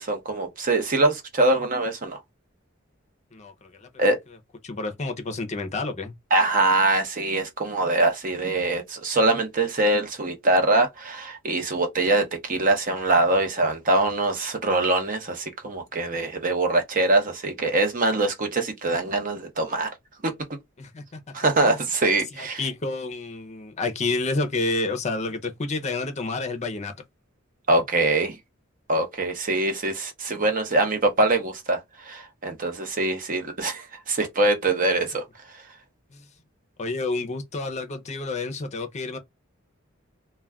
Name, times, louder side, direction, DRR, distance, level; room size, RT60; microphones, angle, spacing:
voice 1, 0.0-2.2 4.0-4.2 6.3-19.9 20.2-20.3 21.3-22.6 27.7-28.4 28.9-35.2, right 2 dB, 40° right, 0.7 m, -23 dB
voice 2, 3.3-4.1 4.6-6.1 20.8-21.8 22.4-26.9 36.1-36.3 36.8-39.2, left 3 dB, 35° left, 0.6 m, -30 dB
2.3 x 2.2 x 3.4 m
head